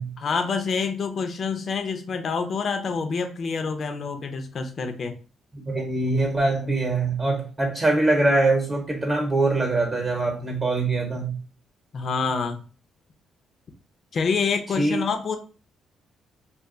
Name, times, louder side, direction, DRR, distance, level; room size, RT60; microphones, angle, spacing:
voice 1, 0.2-5.1 11.9-12.6 14.1-15.4, left 5 dB, 50° left, 6 dB, 0.5 m, -27 dB
voice 2, 5.7-11.4 14.8-15.0, right 2 dB, 30° right, 1 dB, 0.9 m, -23 dB
2.3 x 2.3 x 3.8 m, 0.38 s
cardioid pair, 90°, 0 cm